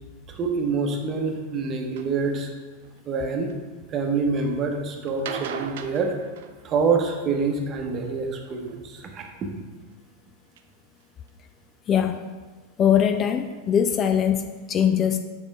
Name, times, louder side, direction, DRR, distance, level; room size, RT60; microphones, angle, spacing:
voice 1, 0.3-2.5 3.1-3.5 3.9-6.1 6.6-9.5, right 4 dB, 30° right, 3 dB, 0.9 m, -26 dB
sound 1, 2.0-2.1 2.8-3.5 5.1-7.1 8.6-9.2 9.9-10.0 10.6-10.7 11.0-11.1 11.3-11.4, right 8 dB, 55° right, 0.4 m, -37 dB
voice 2, 11.9-12.3 12.8-15.2, left 8 dB, 30° left, 8 dB, 0.3 m, -21 dB
7.2 x 4.7 x 3.4 m, 1.3 s
figure-of-eight pair, 90°, 0 cm